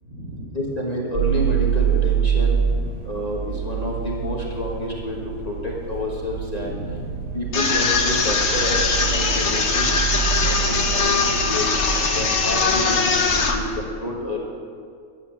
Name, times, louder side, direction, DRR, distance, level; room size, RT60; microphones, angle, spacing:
voice 1, 0.0-0.6 2.5-3.1 6.5-7.4 9.9-10.3, equal, 60° right, -7 dB, 4.4 m, -37 dB
voice 2, 0.5-2.6 3.1-5.2 5.5-6.7 7.3-9.9 10.5-11.7 12.1-13.2 13.5-14.4, left 1 dB, 30° left, -3 dB, 1.5 m, -28 dB
sound 1, 1.1-13.7, right 7 dB, 90° right, 1.8 m, -26 dB
sound 2, 7.5-13.6, left 4 dB, 55° left, 1.4 m, -21 dB
12.0 x 8.2 x 7.3 m, 2.2 s
omnidirectional pair, 1.5 m